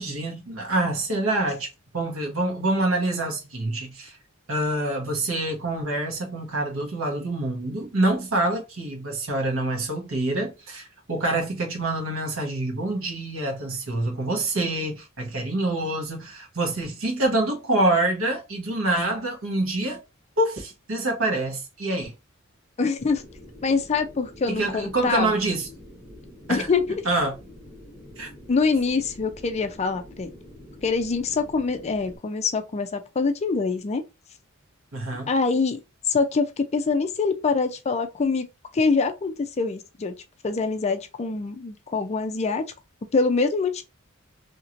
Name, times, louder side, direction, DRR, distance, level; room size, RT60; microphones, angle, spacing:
voice 1, 0.0-1.7 1.9-4.1 4.5-20.0 20.4-22.1 24.5-25.7 26.5-26.7 27.0-27.4 28.2-28.3 34.9-35.3, right 2 dB, 70° right, 1.1 m, -26 dB
voice 2, 22.8-23.2 23.6-25.3 26.5-27.0 28.5-30.3 30.8-34.0 35.3-35.8 36.1-38.5 38.7-40.1 40.4-42.7 43.1-43.8, left 4 dB, 30° left, 0.4 m, -24 dB
sound 1, 23.0-32.2, left 1 dB, 5° left, 0.9 m, -46 dB
2.9 x 2.9 x 2.5 m
head